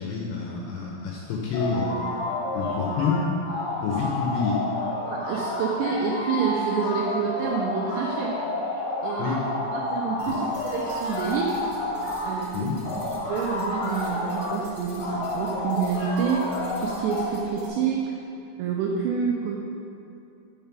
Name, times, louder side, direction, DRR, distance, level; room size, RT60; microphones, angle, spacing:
voice 1, 0.0-2.0 2.5-3.2 3.8-4.7 9.2-9.4 10.3-10.4 12.5-12.8, left 5 dB, 80° left, -2 dB, 2.6 m, -28 dB
sound 1, 1.5-3.2 3.5-12.4 12.8-14.6 15.0-17.3, left 2 dB, 55° left, 2.3 m, -30 dB
voice 2, 5.1-8.3 9.0-9.4 9.7-11.6 12.3-12.7 13.3-16.5 16.8-18.1 18.6-19.6, right 6 dB, 85° right, -1 dB, 2.5 m, -28 dB
sound 2, 10.2-17.7, equal, 45° right, 2.0 m, -45 dB
7.3 x 6.8 x 6.0 m, 2.7 s
omnidirectional pair, 5.9 m